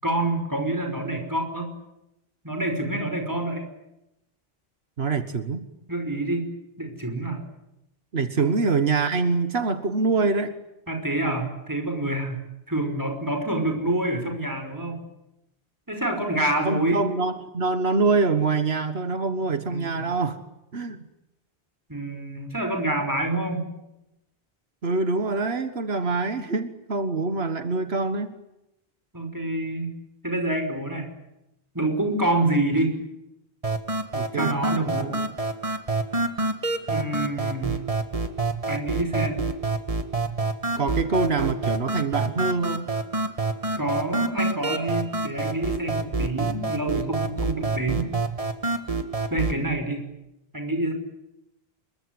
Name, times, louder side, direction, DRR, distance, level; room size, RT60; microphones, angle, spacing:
voice 1, 0.0-1.7 2.4-3.6 5.9-6.5 6.8-7.4 8.4-8.7 10.9-12.4 12.7-15.0 15.9-17.0 19.7-20.1 21.9-23.6 29.1-29.9 30.2-31.1 31.7-32.9 34.3-35.2 36.9-37.9 38.7-39.5 43.8-48.1 49.3-50.1 50.5-50.9, right 1 dB, 20° right, 5 dB, 5.5 m, -27 dB
voice 2, 5.0-5.7 8.1-10.5 16.6-20.4 20.7-21.0 24.8-28.4 34.1-34.5 40.8-42.9, right 4 dB, 80° right, 10 dB, 1.7 m, -25 dB
sound 1, 33.6-49.6, right 2 dB, 35° right, 1.9 m, -27 dB
26.5 x 23.0 x 9.6 m, 0.89 s
omnidirectional pair, 1.0 m